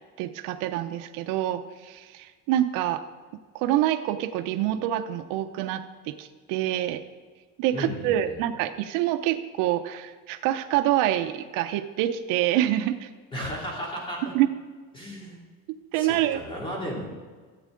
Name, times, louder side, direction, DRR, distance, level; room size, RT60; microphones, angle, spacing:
voice 1, 0.2-3.0 3.5-7.0 7.6-13.1 14.3-14.5 15.9-16.4, right 13 dB, 75° right, 9 dB, 0.7 m, -26 dB
voice 2, 7.7-8.4 13.3-14.3 14.9-15.4 16.0-17.1, equal, 15° left, -3 dB, 2.6 m, -34 dB
14.0 x 8.3 x 3.8 m, 1.5 s
cardioid pair, 170°, 33 cm